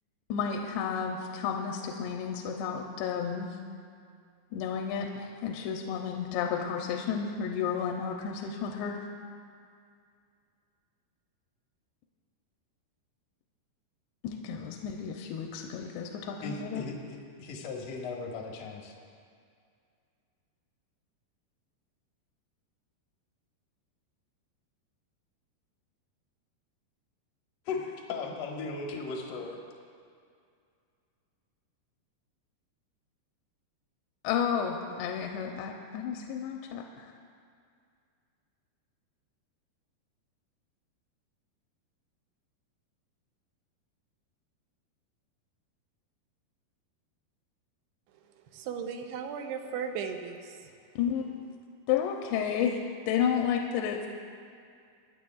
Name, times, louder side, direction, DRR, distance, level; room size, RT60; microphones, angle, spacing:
voice 1, 0.3-3.6 4.5-9.1 14.2-16.8 34.2-37.1 51.0-51.2 51.9-52.8 53.1-54.1, left 7 dB, 90° left, 2 dB, 2.7 m, -32 dB
voice 2, 16.4-18.9 27.6-29.6, left 4 dB, 70° left, -1 dB, 1.5 m, -37 dB
voice 3, 48.5-50.7, right 6 dB, 80° right, 5 dB, 2.7 m, -36 dB
23.5 x 10.5 x 2.3 m, 2.3 s
omnidirectional pair, 4.8 m